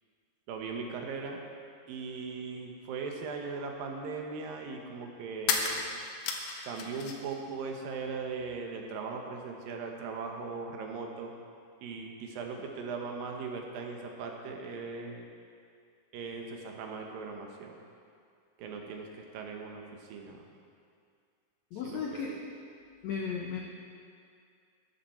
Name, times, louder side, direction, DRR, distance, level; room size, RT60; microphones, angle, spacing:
voice 1, 0.5-1.4 1.9-5.9 6.6-11.3 11.8-15.3 16.1-17.8 18.6-19.8 20.1-20.5 21.8-22.4, right 4 dB, 75° right, 2 dB, 2.7 m, -39 dB
sound 1, 3.1-3.2 5.4-7.4 7.6-8.5, left 5 dB, 70° left, 2.1 m, -34 dB
voice 2, 21.7-22.4 23.0-23.6, left 6 dB, 90° left, 0 dB, 1.5 m, -35 dB
13.5 x 12.0 x 4.3 m, 2.3 s
omnidirectional pair, 4.4 m